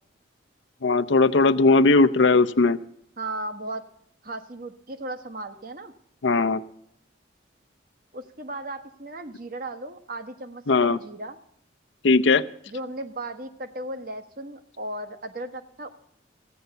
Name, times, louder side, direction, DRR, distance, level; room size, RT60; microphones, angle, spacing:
voice 1, 0.8-2.8 6.2-6.6 10.7-11.0 12.0-12.4, left 3 dB, 75° left, 10 dB, 0.7 m, -18 dB
voice 2, 3.2-3.9 4.2-5.9 8.1-11.4 12.7-15.9, right 1 dB, 50° right, 8 dB, 1.2 m, -36 dB
15.5 x 9.3 x 6.8 m, 0.70 s
head